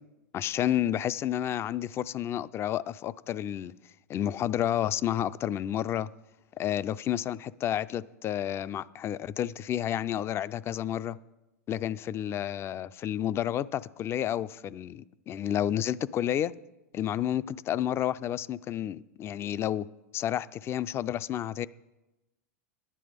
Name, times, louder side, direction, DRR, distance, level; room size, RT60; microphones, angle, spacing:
voice 1, 0.3-3.7 4.1-6.1 6.6-11.2 11.7-16.5 16.9-19.9 20.1-21.7, left 11 dB, 30° left, 0.3 m, -30 dB
10.5 x 9.8 x 5.1 m
hypercardioid pair, 105°, 9 cm